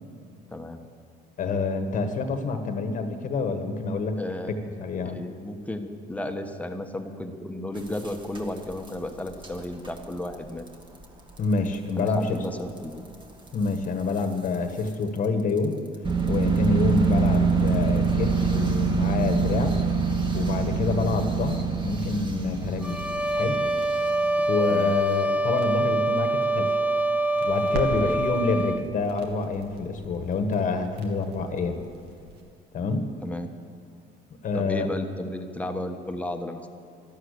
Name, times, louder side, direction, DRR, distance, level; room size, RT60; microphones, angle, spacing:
voice 1, 1.4-4.2 4.8-5.2 11.4-12.4 13.5-15.8 16.2-19.8 20.3-23.0 23.3-23.6 24.5-26.8 27.4-31.8 32.7-33.1 34.4-34.9, left 4 dB, 50° left, 7 dB, 1.4 m, -27 dB
voice 2, 4.2-4.7 5.0-10.6 12.0-13.0 24.7-24.9 28.0-28.2 33.2-33.5 34.5-36.7, left 1 dB, 10° left, 5 dB, 1.2 m, -33 dB
sound 1, 7.8-8.9 9.3-9.5 9.8-10.0 10.3-10.4 10.7-10.8 11.4-11.5 12.2-12.3 12.8-12.9 14.2-14.3 14.9-15.0 16.1-24.4, right 4 dB, 30° right, 2.0 m, -25 dB
sound 2, 21.9-32.4, right 3 dB, 75° right, 2.2 m, -43 dB
sound 3, 22.8-28.9, right 2 dB, 10° right, 0.7 m, -25 dB
13.0 x 12.5 x 8.3 m, 2.4 s
cardioid pair, 110°, 17 cm